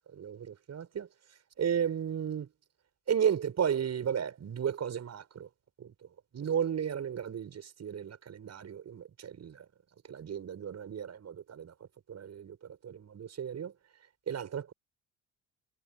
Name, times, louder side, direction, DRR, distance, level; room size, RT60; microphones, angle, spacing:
voice 1, 0.1-1.1 1.6-2.5 3.1-5.5 5.8-5.9 6.3-9.6 10.1-11.7 12.1-13.7 14.3-14.7, right 8 dB, 40° right, 6.8 m, -34 dB
figure-of-eight pair, 50°, 40 cm